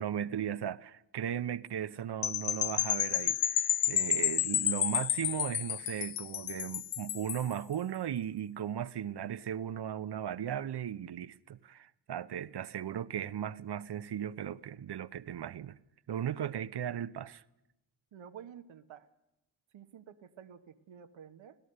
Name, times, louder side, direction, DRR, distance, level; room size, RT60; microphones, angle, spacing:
voice 1, 0.0-15.8 16.1-17.4, right 9 dB, 60° right, 0.9 m, -37 dB
sound 1, 2.2-7.5, left 11 dB, 60° left, 0.7 m, -31 dB
voice 2, 18.1-19.1 19.7-21.6, right 8 dB, 80° right, 1.2 m, -48 dB
25.0 x 16.5 x 6.7 m
supercardioid pair, 45°, 47 cm